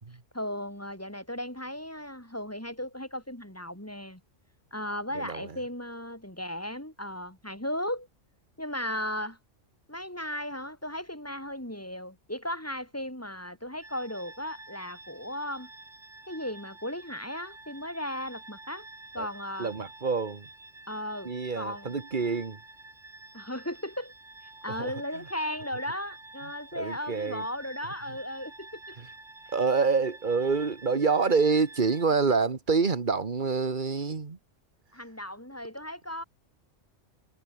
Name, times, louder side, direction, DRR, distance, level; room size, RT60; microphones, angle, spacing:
voice 1, 0.3-4.2 4.7-8.1 8.6-9.4 9.9-15.7 16.3-18.9 19.1-19.7 20.9-21.9 23.3-24.1 24.6-29.0 34.9-36.2, left 1 dB, 10° left, 4.8 m, -36 dB
voice 2, 5.1-5.6 19.2-19.3 19.6-20.5 21.2-22.6 24.7-24.9 26.7-27.4 29.0-29.1 29.5-34.4, right 4 dB, 40° right, 1.7 m, -27 dB
sound 1, 13.8-32.0, right 2 dB, 75° right, 4.8 m, -49 dB
omnidirectional pair, 1.3 m